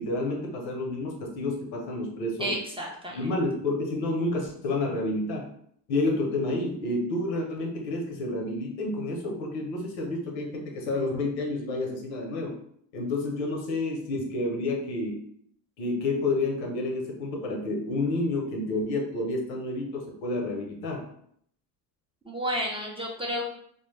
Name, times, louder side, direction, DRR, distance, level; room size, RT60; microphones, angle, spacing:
voice 1, 0.0-2.6 3.1-5.5 5.9-12.6 12.9-15.2 15.8-21.1, left 2 dB, 90° left, 1 dB, 0.7 m, -29 dB
voice 2, 2.4-3.2 22.2-23.5, equal, 10° right, -3 dB, 0.4 m, -31 dB
2.1 x 2.0 x 3.0 m, 0.66 s
hypercardioid pair, 70°, 50 cm